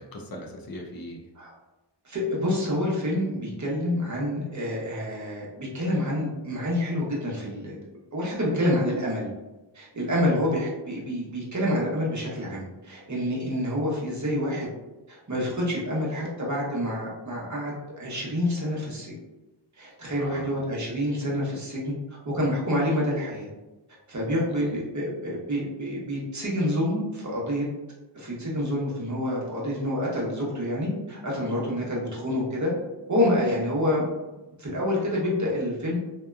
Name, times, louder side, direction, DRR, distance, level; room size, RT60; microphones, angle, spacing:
voice 1, 0.0-1.3 20.2-20.6 24.5-24.8 33.5-33.6, equal, 55° left, 1 dB, 0.5 m, -41 dB
voice 2, 2.0-7.7 8.1-9.3 9.7-14.7 15.1-19.1 19.8-23.5 24.1-27.7 28.1-32.7 33.1-34.1 34.6-36.0, left 1 dB, 40° right, -5 dB, 0.9 m, -27 dB
2.7 x 2.2 x 2.2 m, 1.1 s
wide cardioid pair, 75°, 45 cm